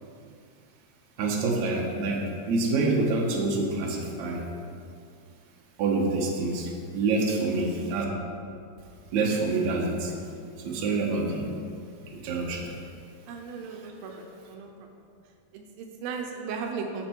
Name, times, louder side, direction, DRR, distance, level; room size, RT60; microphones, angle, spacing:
voice 1, 1.2-4.4 5.8-8.1 9.1-10.1 10.6-11.5 12.2-12.7, right 3 dB, 65° right, -1 dB, 2.3 m, -27 dB
voice 2, 13.3-14.7 15.0-15.1 15.5-17.1, right 5 dB, 85° right, 3 dB, 2.5 m, -36 dB
12.5 x 6.0 x 4.5 m, 2.4 s
omnidirectional pair, 4.0 m